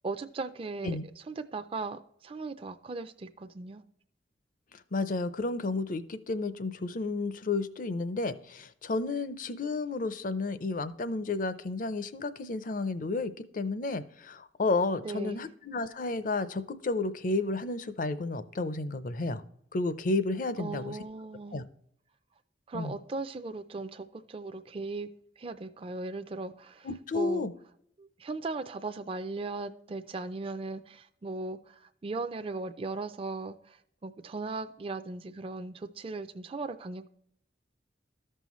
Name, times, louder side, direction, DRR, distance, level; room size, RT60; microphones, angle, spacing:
voice 1, 0.0-1.0 1.3-3.8 15.0-15.5 20.6-21.6 22.7-25.1 25.4-26.9 27.1-27.5 28.0-37.1, right 3 dB, 30° right, 0.4 m, -38 dB
voice 2, 4.9-19.4 19.7-21.0 21.5-21.6 22.7-23.0 26.8-27.5, left 3 dB, 45° left, 0.5 m, -32 dB
14.0 x 5.5 x 3.0 m
head